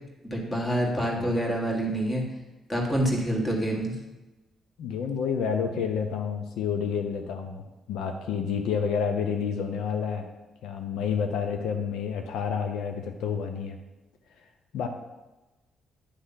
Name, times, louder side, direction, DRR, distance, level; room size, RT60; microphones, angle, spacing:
voice 1, 0.2-2.2 2.7-4.0, right 1 dB, 20° left, -1 dB, 1.8 m, -27 dB
voice 2, 4.8-10.3 10.6-13.8 14.7-14.9, left 6 dB, 85° left, 5 dB, 0.6 m, -29 dB
9.8 x 3.3 x 5.6 m, 1.1 s
cardioid pair, 90°, 0 cm